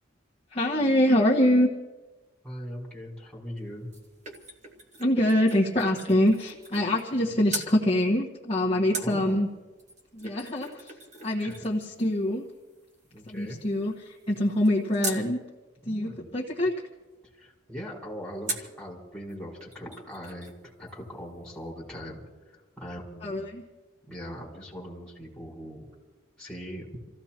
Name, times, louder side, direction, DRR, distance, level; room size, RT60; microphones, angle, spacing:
voice 1, 0.5-1.7 5.0-9.5 10.1-10.9 11.2-12.5 13.3-15.4 15.8-16.7 23.2-23.6, left 1 dB, 30° left, -5 dB, 1.5 m, -24 dB
voice 2, 2.4-3.9 7.5-7.6 8.9-9.3 11.3-11.6 13.1-13.6 15.8-16.3 17.4-22.2 22.5-23.5 24.1-25.8 26.4-26.8, equal, 5° left, -5 dB, 4.9 m, -40 dB
sound 1, 3.6-7.2 7.5-7.8 8.9-15.3 18.5-18.8 19.3-19.4 19.6-20.6 20.9-21.0, right 2 dB, 35° right, 2.0 m, -40 dB
29.0 x 16.0 x 3.0 m, 1.2 s
head